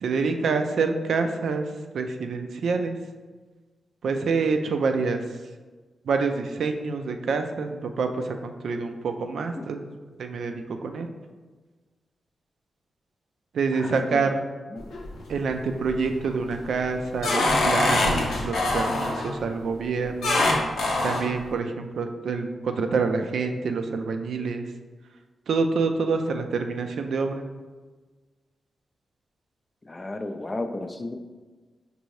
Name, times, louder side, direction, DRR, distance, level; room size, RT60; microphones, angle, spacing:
voice 1, 0.0-1.6 1.9-3.0 4.0-5.2 6.1-9.8 10.2-11.1 13.5-14.4 15.3-20.4 21.0-24.6 25.5-27.4, right 4 dB, 80° right, 6 dB, 0.3 m, -27 dB
voice 2, 13.7-14.3 14.7-14.9 29.8-31.1, left 2 dB, 30° left, 6 dB, 0.4 m, -33 dB
sound 1, 14.8-15.4 15.9-16.3 16.7-19.3 20.2-21.3, left 2 dB, 85° left, 0.7 m, -24 dB
5.1 x 2.6 x 3.1 m, 1.3 s
cardioid pair, 65°, 0 cm